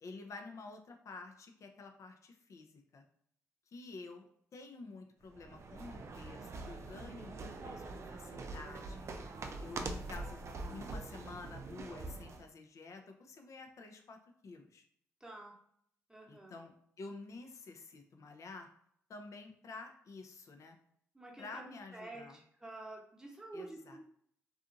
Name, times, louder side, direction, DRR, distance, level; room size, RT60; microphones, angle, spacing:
voice 1, 0.0-3.0 3.7-9.1 9.6-14.8 16.3-18.7 19.1-20.8 21.4-22.4 23.5-24.0, left 3 dB, 60° left, 5 dB, 0.5 m, -50 dB
sound 1, 5.3-12.5, right 3 dB, 50° right, 0.4 m, -44 dB
voice 2, 15.2-15.5 16.1-16.5 21.1-24.0, right 2 dB, 10° right, -1 dB, 0.9 m, -49 dB
2.7 x 2.4 x 2.5 m, 0.67 s
supercardioid pair, 55°, 6 cm